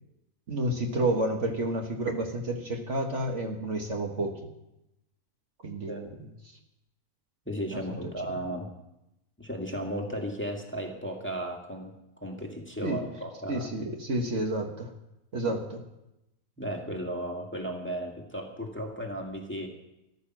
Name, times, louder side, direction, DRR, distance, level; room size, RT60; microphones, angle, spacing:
voice 1, 0.5-4.4 5.6-6.1 7.7-8.0 12.8-13.0 13.5-14.9 15.3-15.8, right 1 dB, 55° right, 2 dB, 1.8 m, -30 dB
voice 2, 7.5-8.7 9.4-13.7 16.6-19.7, right 1 dB, 10° left, 0 dB, 2.0 m, -35 dB
14.0 x 13.0 x 6.0 m, 0.89 s
omnidirectional pair, 1.5 m